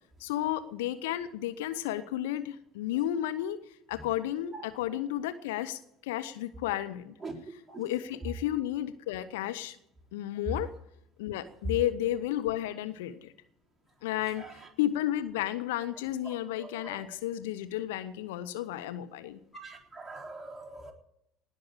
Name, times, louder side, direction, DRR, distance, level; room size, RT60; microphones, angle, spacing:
voice 1, 0.2-3.6 3.9-7.1 7.5-9.8 10.1-10.7 11.2-13.3 14.0-19.4, left 13 dB, 70° left, 11 dB, 0.8 m, -32 dB
voice 2, 16.6-17.0 19.6-20.9, right 3 dB, 5° right, -2 dB, 4.0 m, -43 dB
19.0 x 6.4 x 8.7 m, 0.78 s
figure-of-eight pair, 65°, 0 cm